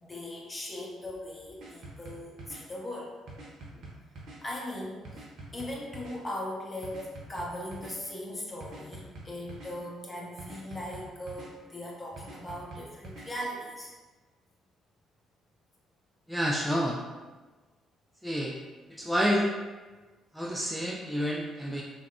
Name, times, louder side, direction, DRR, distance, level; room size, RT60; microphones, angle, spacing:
voice 1, 0.0-3.1 3.7-3.8 4.4-5.2 5.5-13.9, left 1 dB, 25° left, -3 dB, 0.7 m, -39 dB
sound 1, 1.6-2.6 3.3-4.4 5.0-6.2 6.8-7.9 8.6-9.7 10.4-11.5 12.2-13.3, right 2 dB, 55° right, 0.6 m, -45 dB
voice 2, 16.3-17.0 18.2-18.6 18.9-19.5 20.3-21.8, equal, 5° right, -3 dB, 0.3 m, -29 dB
3.4 x 2.1 x 2.3 m, 1.3 s
figure-of-eight pair, 45°, 0 cm